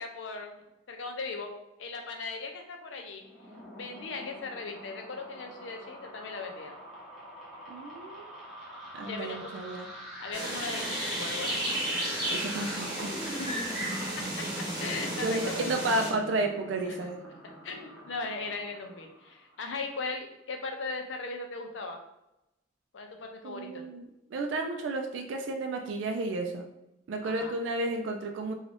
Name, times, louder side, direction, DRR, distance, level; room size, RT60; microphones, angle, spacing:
voice 1, 0.0-1.5 1.8-3.2 3.7-6.7 9.1-9.5 10.2-11.5 13.2-13.7 14.4-15.7 16.8-17.0 17.6-22.0 22.9-23.9 27.2-27.6, left 3 dB, 80° left, 3 dB, 0.5 m, -38 dB
sound 1, 3.2-19.5, equal, ahead, 0.7 m, -44 dB
voice 2, 7.7-8.3 8.9-9.9 12.3-13.1 15.2-17.2 23.4-26.7 27.1-28.5, right 2 dB, 80° right, 3 dB, 0.3 m, -32 dB
sound 2, 10.3-16.1, right 1 dB, 25° right, 1.0 m, -33 dB
2.5 x 2.3 x 3.3 m, 0.88 s
head